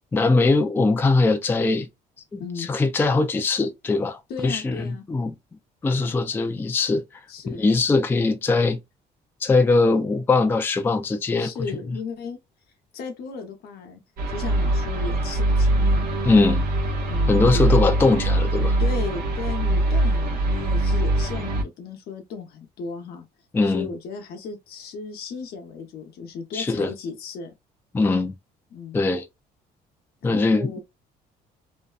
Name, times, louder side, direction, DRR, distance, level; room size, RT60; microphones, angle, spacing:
voice 1, 0.1-1.9 2.3-5.3 5.8-7.0 7.5-8.8 9.4-11.5 16.2-16.6 17.3-18.8 23.5-23.9 26.5-26.9 27.9-28.3 28.9-29.2 30.2-30.7, left 3 dB, 10° left, 0.3 m, -21 dB
voice 2, 2.4-2.7 4.3-5.0 7.3-7.7 11.4-12.4 12.9-14.0 14.3-16.1 17.1-17.6 18.8-23.2 23.6-27.5 28.7-29.0 30.2-30.8, left 5 dB, 70° left, 0.8 m, -35 dB
sound 1, 14.2-21.6, right 1 dB, 60° right, 0.9 m, -22 dB
2.6 x 2.1 x 2.3 m
cardioid pair, 110°, 17 cm